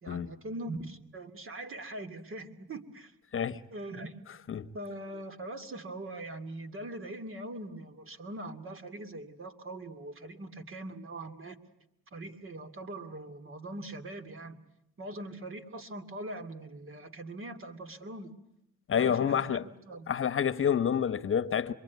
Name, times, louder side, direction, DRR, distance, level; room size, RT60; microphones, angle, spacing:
voice 1, 0.0-3.1 3.7-4.1 4.7-11.6 12.1-14.6 15.0-18.3 18.9-20.1, right 1 dB, 45° right, 2.6 m, -42 dB
voice 2, 18.9-19.6 20.1-21.7, left 8 dB, 45° left, 1.1 m, -28 dB
26.5 x 23.0 x 9.5 m
cardioid pair, 90°, 30 cm